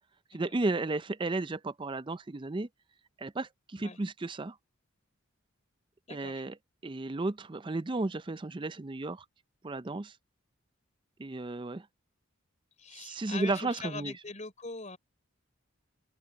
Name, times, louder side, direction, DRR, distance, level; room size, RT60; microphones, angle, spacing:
voice 1, 0.3-2.7 3.2-4.6 6.1-6.6 6.8-9.2 9.6-10.1 11.2-11.9 12.9-14.1, right 2 dB, 25° right, 0.4 m, -33 dB
voice 2, 6.1-6.4 12.8-15.0, left 4 dB, 35° left, 4.1 m, -42 dB
open air
head